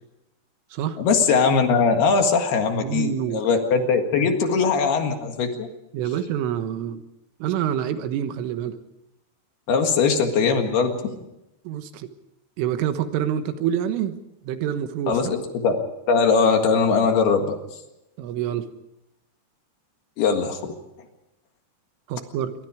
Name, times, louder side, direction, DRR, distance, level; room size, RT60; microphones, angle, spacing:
voice 1, 1.0-5.7 9.7-11.1 15.1-15.8 16.1-17.6 20.2-20.7, left 5 dB, 60° left, 5 dB, 3.4 m, -20 dB
voice 2, 2.8-3.4 3.8-3.9 5.9-7.0 7.4-8.8 11.7-12.1 12.6-14.2 14.5-15.4 18.2-18.7 22.1-22.5, right 10 dB, 85° right, 9 dB, 3.9 m, -27 dB
27.0 x 23.5 x 5.0 m, 0.88 s
omnidirectional pair, 5.6 m